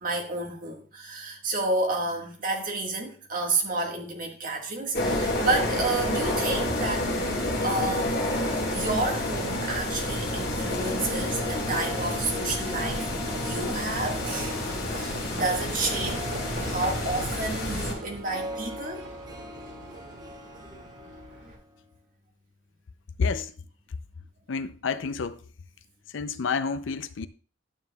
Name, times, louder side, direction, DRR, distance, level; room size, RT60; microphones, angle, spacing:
voice 1, 0.0-7.1 7.6-8.2 8.7-13.1 13.4-16.2 16.6-19.1, right 2 dB, 45° right, 1.6 m, -30 dB
sound 1, 4.9-17.9, left 1 dB, 50° left, 1.6 m, -29 dB
Harp, 10.6-21.6 21.9-22.0, left 1 dB, 20° right, 0.8 m, -41 dB
Livestock farm animals working animals, 12.9-21.5, right 1 dB, 60° right, 2.6 m, -41 dB
voice 2, 23.2-23.5 24.5-25.4 26.1-27.3, left 5 dB, 75° left, 0.5 m, -29 dB
11.5 x 7.4 x 2.3 m
head